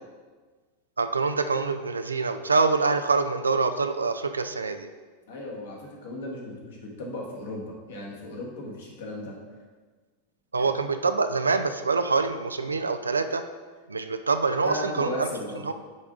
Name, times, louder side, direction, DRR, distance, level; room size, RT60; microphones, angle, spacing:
voice 1, 1.0-4.9 10.5-13.4 13.9-15.3 15.6-15.7, right 4 dB, 75° right, 8 dB, 0.4 m, -25 dB
voice 2, 5.3-9.3 10.5-10.7 14.6-15.7, left 1 dB, 60° left, -2 dB, 1.5 m, -36 dB
9.2 x 3.6 x 3.7 m, 1.4 s
figure-of-eight pair, 90°, 0 cm